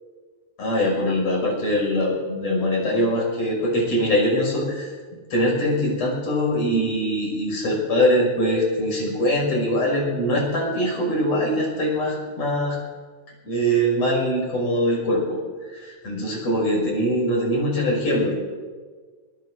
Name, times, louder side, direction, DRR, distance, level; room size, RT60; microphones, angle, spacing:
voice 1, 0.6-4.9 5.3-12.8 13.4-15.4 15.7-18.3, equal, 55° left, -2 dB, 6.9 m, -22 dB
23.5 x 22.5 x 2.6 m, 1.5 s
omnidirectional pair, 3.7 m